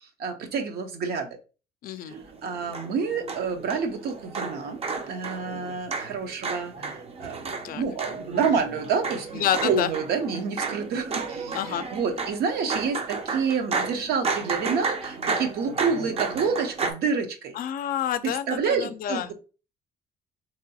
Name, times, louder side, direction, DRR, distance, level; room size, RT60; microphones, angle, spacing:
voice 1, 0.2-1.3 2.4-4.8 5.1-17.5 18.2-19.3, right 5 dB, 70° right, 0.8 m, -28 dB
voice 2, 1.8-2.2 7.6-7.9 9.3-9.9 11.5-11.9 17.5-19.3, left 10 dB, 60° left, 0.4 m, -28 dB
sound 1, 2.1-16.9, right 4 dB, 35° right, 0.6 m, -33 dB
3.8 x 2.9 x 2.7 m
cardioid pair, 110°, 17 cm